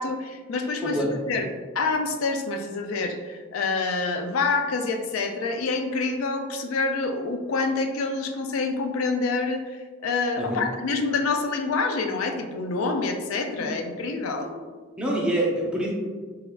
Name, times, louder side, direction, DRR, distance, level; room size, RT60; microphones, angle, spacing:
voice 1, 0.0-1.5 1.7-14.5, left 3 dB, 80° left, 5 dB, 0.4 m, -27 dB
voice 2, 15.0-15.9, right 1 dB, 5° right, -3 dB, 0.5 m, -26 dB
3.4 x 3.4 x 2.2 m, 1.5 s
head